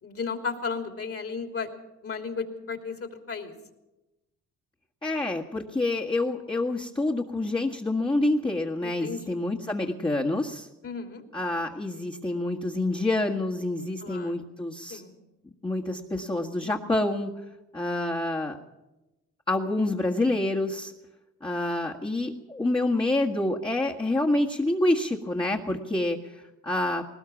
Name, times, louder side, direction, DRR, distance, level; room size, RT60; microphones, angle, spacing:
voice 1, 0.0-1.7 2.0-3.5 8.8-9.3 10.8-11.2 14.0-14.3 14.9-15.1, left 5 dB, 50° left, 4 dB, 3.2 m, -34 dB
voice 2, 5.0-10.7 11.3-15.0 15.6-17.3 17.7-18.6 19.5-20.9 21.4-27.0, left 2 dB, 15° left, -4 dB, 1.7 m, -27 dB
20.0 x 19.0 x 7.2 m, 1.0 s
cardioid pair, 90°, 30 cm